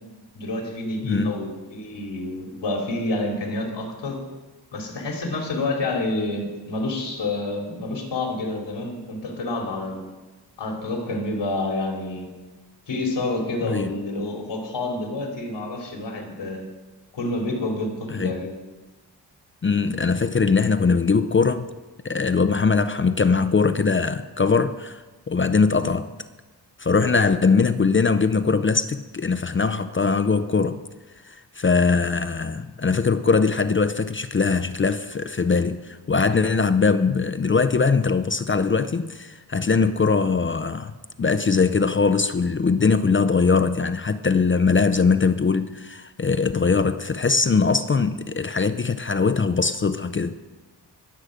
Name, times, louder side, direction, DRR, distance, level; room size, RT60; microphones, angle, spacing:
voice 1, 0.3-4.2 4.7-10.1 10.6-12.3 12.9-16.6 17.1-18.5, left 2 dB, 85° left, 3.1 m, -28 dB
voice 2, 1.0-1.4 13.6-13.9 18.1-18.4 19.6-21.7 22.0-26.1 26.8-30.8 31.2-40.9 41.2-50.4, left 4 dB, 30° left, 0.5 m, -21 dB
21.5 x 8.0 x 5.0 m
wide cardioid pair, 110°, 42 cm